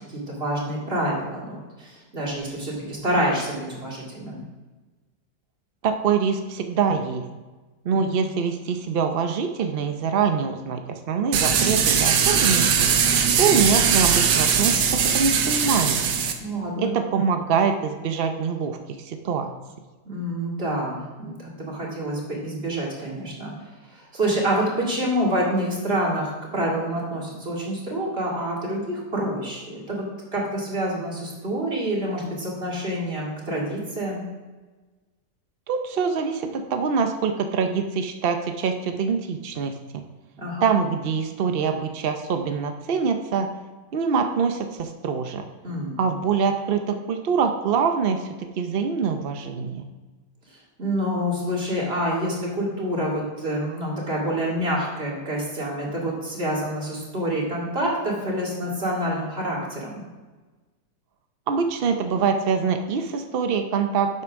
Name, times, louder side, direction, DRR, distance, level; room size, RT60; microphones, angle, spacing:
voice 1, 0.1-4.4 7.9-8.3 16.4-17.0 20.0-23.5 23.9-30.0 30.3-34.2 40.4-40.7 45.6-45.9 50.8-60.0, right 1 dB, 35° right, -4 dB, 2.7 m, -27 dB
voice 2, 5.8-7.2 7.9-10.8 11.1-12.7 13.4-14.8 15.1-16.1 16.8-18.8 19.1-19.5 35.7-40.0 40.6-43.5 43.9-45.4 46.0-48.2 48.6-49.8 61.5-64.1, right 6 dB, 70° right, 6 dB, 0.5 m, -24 dB
sound 1, 11.3-16.3, right 7 dB, 85° right, 1.5 m, -20 dB
11.0 x 7.6 x 3.6 m, 1.3 s
omnidirectional pair, 1.8 m